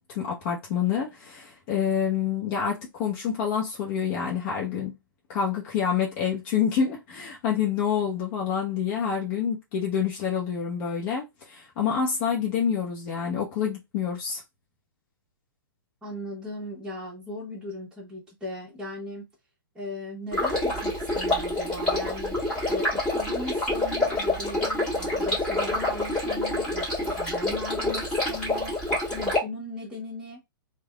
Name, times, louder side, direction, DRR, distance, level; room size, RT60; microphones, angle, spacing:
voice 1, 0.1-4.9 5.3-14.4, left 7 dB, 35° left, 0.8 m, -27 dB
voice 2, 16.0-19.3 19.7-22.3 22.7-28.8 29.1-30.4, left 2 dB, 5° right, 1.2 m, -37 dB
Stream, 20.3-29.4, left 1 dB, 10° left, 1.7 m, -27 dB
3.2 x 2.3 x 2.3 m
figure-of-eight pair, 120°, 12 cm